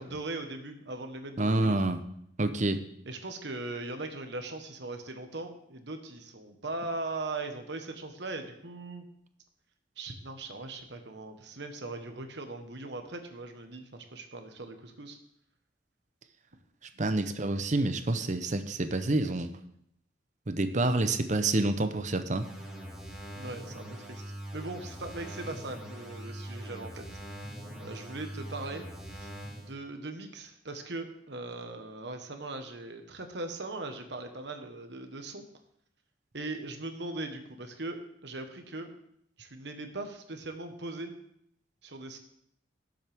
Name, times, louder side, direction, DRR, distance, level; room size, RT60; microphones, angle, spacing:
voice 1, 0.0-1.8 3.0-9.0 10.0-15.2 23.3-24.2 24.5-27.0 27.8-28.8 29.1-29.3 29.6-35.4 36.3-38.9 39.4-41.1 41.8-42.2, right 2 dB, 65° right, 6 dB, 1.4 m, -39 dB
voice 2, 1.4-2.0 2.4-2.8 17.0-19.5 20.5-22.5, right 2 dB, 40° right, 9 dB, 0.8 m, -28 dB
sound 1, 22.3-29.7, right 1 dB, 5° right, 2.0 m, -42 dB
18.0 x 7.7 x 3.6 m, 0.71 s
head